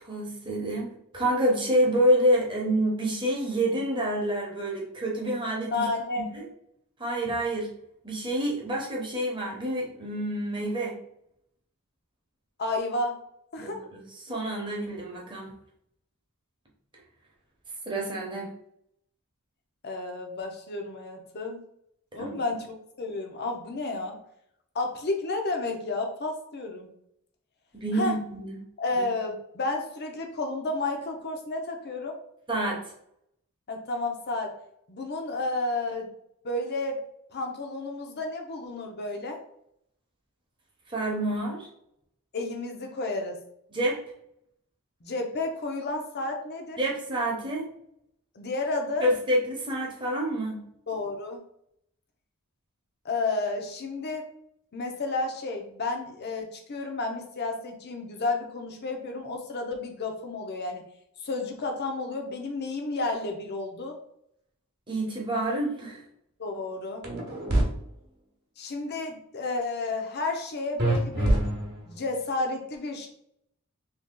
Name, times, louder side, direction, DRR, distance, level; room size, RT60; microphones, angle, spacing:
voice 1, 0.0-5.9 6.2-6.5 7.0-7.7 8.0-11.0 13.6-15.5 17.9-18.5 22.2-22.4 27.7-28.6 32.5-32.8 40.9-41.7 43.7-44.0 46.8-47.7 49.0-50.6 64.9-66.0, right 1 dB, 20° right, -2 dB, 0.9 m, -28 dB
voice 2, 5.7-6.3 12.6-13.2 13.5-13.8 19.8-21.6 22.1-22.7 23.0-24.2 24.7-26.9 27.9-28.1 28.8-32.2 33.7-34.5 34.9-36.1 36.4-37.0 37.3-39.4 42.3-43.4 45.0-46.8 48.3-49.1 50.9-51.4 53.0-54.3 54.7-60.8 61.2-64.0 66.4-67.0 68.6-71.4 71.9-73.1, left 2 dB, 50° left, 3 dB, 0.6 m, -31 dB
sound 1, 67.0-67.6 70.8-72.0, right 1 dB, 50° right, 0.9 m, -25 dB
2.9 x 2.8 x 3.7 m, 0.73 s
head